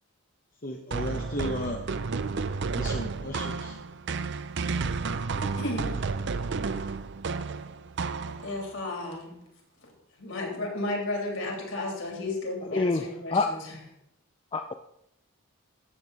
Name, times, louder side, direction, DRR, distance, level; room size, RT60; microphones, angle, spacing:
voice 1, 0.6-1.8 2.7-3.8, left 1 dB, 40° left, 1 dB, 0.9 m, -34 dB
sound 1, 0.9-8.7, right 4 dB, 50° right, 0.5 m, -31 dB
voice 2, 5.4-6.1 8.4-9.4 9.8-9.9 10.2-13.6, left 2 dB, 60° left, 0 dB, 3.3 m, -33 dB
voice 3, 12.7-13.5 14.5-14.7, left 3 dB, 25° left, 6 dB, 0.4 m, -27 dB
13.5 x 8.3 x 4.1 m, 0.80 s
head